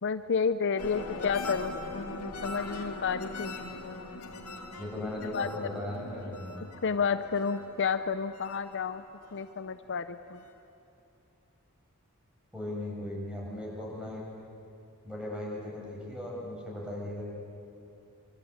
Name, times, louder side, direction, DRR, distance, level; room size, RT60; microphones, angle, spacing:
voice 1, 0.0-1.8 2.4-3.5 5.3-5.8 6.8-9.0 9.3-10.4, left 5 dB, 55° left, 11 dB, 0.7 m, -30 dB
sound 1, 0.8-9.6 10.0-10.5, left 2 dB, 90° left, 2.5 m, -41 dB
voice 2, 4.8-6.6 12.5-14.2 15.0-17.2, left 1 dB, 5° right, -3 dB, 7.1 m, -37 dB
26.0 x 24.5 x 8.9 m, 2.8 s
head